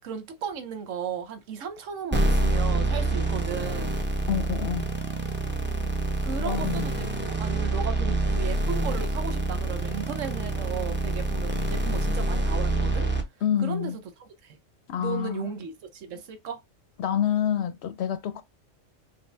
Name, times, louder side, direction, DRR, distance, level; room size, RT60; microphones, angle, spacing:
voice 1, 0.0-3.9 6.2-13.1 13.6-13.9 14.2-14.6 15.0-16.6, right 6 dB, 80° right, 1.2 m, -35 dB
sound 1, 2.1-13.2, right 2 dB, 10° right, 0.6 m, -26 dB
voice 2, 4.3-4.9 6.4-6.9 13.4-14.0 14.9-15.5 17.0-18.4, left 9 dB, 65° left, 0.8 m, -27 dB
5.6 x 2.2 x 3.3 m
omnidirectional pair, 1.3 m